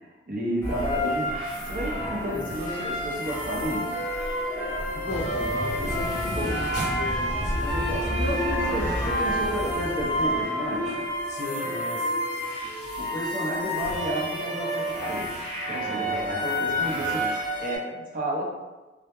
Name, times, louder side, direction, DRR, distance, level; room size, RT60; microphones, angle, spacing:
voice 1, 0.0-4.0 6.2-6.6 8.1-11.0 13.0-15.4 15.7-18.4, equal, 50° right, -3 dB, 0.5 m, -32 dB
sound 1, 0.6-17.8, equal, 15° left, 0.9 m, -30 dB
Wind instrument woodwind instrument, 3.2-13.1, right 1 dB, 75° right, 0.9 m, -35 dB
voice 2, 4.9-8.1 10.8-12.1 15.8-16.5, left 2 dB, 40° left, 0 dB, 0.3 m, -36 dB
sound 2, 5.1-10.5, equal, 5° right, 0.9 m, -32 dB
2.1 x 2.0 x 2.8 m, 1.2 s
head